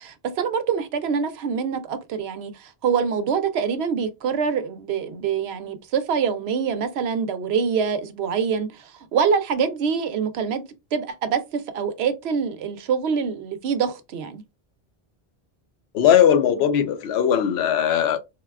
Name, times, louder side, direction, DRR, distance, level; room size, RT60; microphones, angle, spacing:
voice 1, 0.0-10.6 10.9-14.4, right 6 dB, 85° right, 0.9 m, -25 dB
voice 2, 15.9-18.2, left 9 dB, 85° left, 0.8 m, -19 dB
3.8 x 2.2 x 2.3 m
omnidirectional pair, 1.0 m